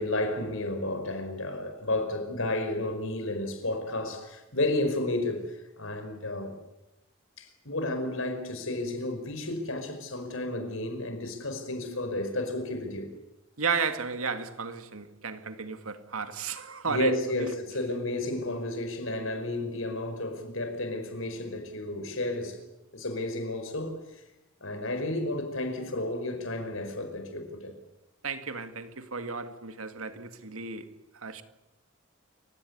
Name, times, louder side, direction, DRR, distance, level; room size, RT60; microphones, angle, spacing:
voice 1, 0.0-6.6 7.4-13.1 16.9-22.7 22.9-24.2 24.6-27.7, left 2 dB, 70° left, 5.0 m, -32 dB
voice 2, 13.6-17.5 28.2-31.4, right 5 dB, 85° right, 2.1 m, -34 dB
28.5 x 16.5 x 9.7 m
head